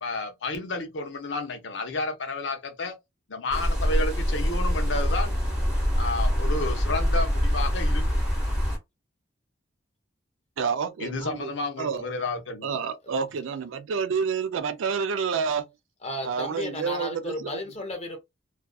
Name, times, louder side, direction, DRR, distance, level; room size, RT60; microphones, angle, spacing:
voice 1, 0.0-3.0 3.3-5.4 6.0-8.2 11.0-12.8, left 2 dB, 65° left, 0.6 m, -31 dB
sound 1, 3.5-8.8, equal, 5° right, 0.9 m, -24 dB
voice 2, 10.6-11.5 11.8-12.0 12.6-15.7 16.2-17.5, right 6 dB, 80° right, 0.4 m, -29 dB
voice 3, 16.0-18.2, left 1 dB, 30° left, 0.8 m, -34 dB
2.4 x 2.3 x 2.3 m
head